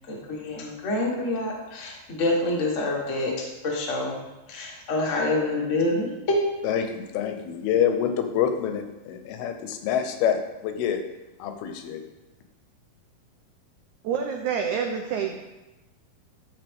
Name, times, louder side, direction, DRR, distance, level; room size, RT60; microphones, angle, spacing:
voice 1, 0.1-4.2 4.5-6.4, left 2 dB, 45° left, -2 dB, 1.0 m, -27 dB
voice 2, 6.6-11.0 11.4-12.0, left 8 dB, 90° left, 6 dB, 2.8 m, -26 dB
voice 3, 14.0-15.4, right 7 dB, 85° right, 4 dB, 1.7 m, -27 dB
13.0 x 6.3 x 3.5 m, 1.0 s
omnidirectional pair, 4.3 m